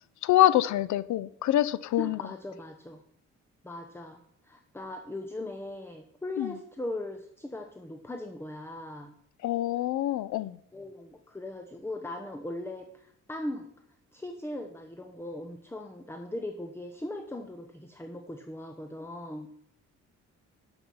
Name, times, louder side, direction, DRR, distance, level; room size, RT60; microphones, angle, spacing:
voice 1, 0.2-2.2 6.4-6.5 9.4-10.6, left 13 dB, 70° left, 0.5 m, -25 dB
voice 2, 2.0-3.0 3.6-9.1 10.7-13.7 14.1-19.5, left 1 dB, 10° left, 0.9 m, -39 dB
12.0 x 6.1 x 5.5 m
cardioid pair, 90°, 30 cm